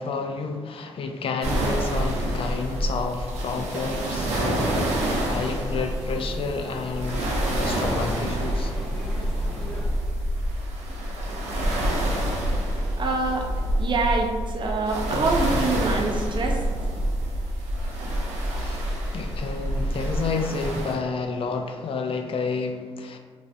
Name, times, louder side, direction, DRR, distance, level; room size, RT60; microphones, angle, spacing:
voice 1, 0.0-8.7 18.6-18.9 19.1-23.2, left 4 dB, 55° left, 5 dB, 0.4 m, -30 dB
sound 1, 1.4-21.0, right 1 dB, 90° right, 0.5 m, -27 dB
sound 2, 3.5-9.8, equal, 5° left, 1.4 m, -40 dB
voice 2, 13.0-13.5 13.8-16.6, right 3 dB, 45° right, 2 dB, 0.5 m, -25 dB
2.5 x 2.4 x 3.3 m, 1.5 s
supercardioid pair, 55°, 11 cm